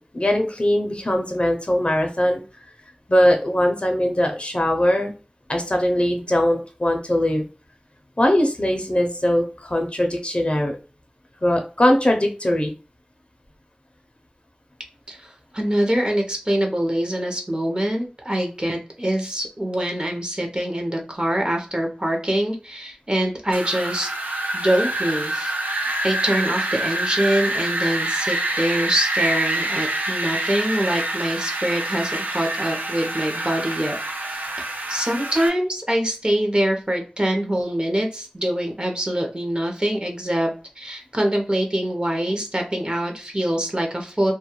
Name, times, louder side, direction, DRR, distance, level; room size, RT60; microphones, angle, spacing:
voice 1, 0.0-2.4 3.1-5.1 5.5-7.4 8.2-10.7 11.4-12.7, left 1 dB, 40° left, 3 dB, 0.5 m, -21 dB
voice 2, 15.1-24.1 24.5-33.9 34.3-40.5 40.8-44.3, right 1 dB, 35° right, 2 dB, 0.6 m, -24 dB
Wind, 23.5-35.5, right 2 dB, 85° right, 0.4 m, -26 dB
2.2 x 2.2 x 2.9 m, 0.35 s
wide cardioid pair, 50°, 3 cm